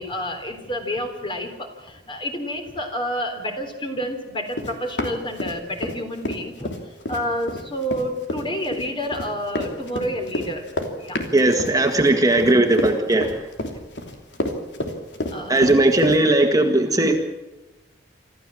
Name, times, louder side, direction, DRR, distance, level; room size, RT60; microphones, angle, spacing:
voice 1, 0.0-10.6 11.0-11.3 15.3-15.8, equal, 30° left, 5 dB, 3.6 m, -29 dB
Run, 4.5-6.0 6.2-16.2, left 1 dB, 90° left, 3.0 m, -29 dB
voice 2, 11.3-13.4 15.5-17.2, right 2 dB, 20° right, 4 dB, 1.7 m, -18 dB
26.0 x 14.0 x 7.7 m, 1.1 s
head